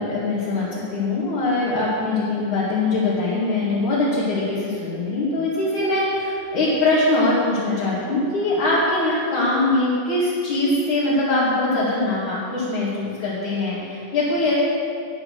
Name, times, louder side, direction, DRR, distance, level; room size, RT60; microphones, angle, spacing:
voice 1, 0.0-14.5, left 2 dB, 50° left, -9 dB, 3.1 m, -22 dB
10.5 x 9.3 x 6.5 m, 2.4 s
omnidirectional pair, 5.1 m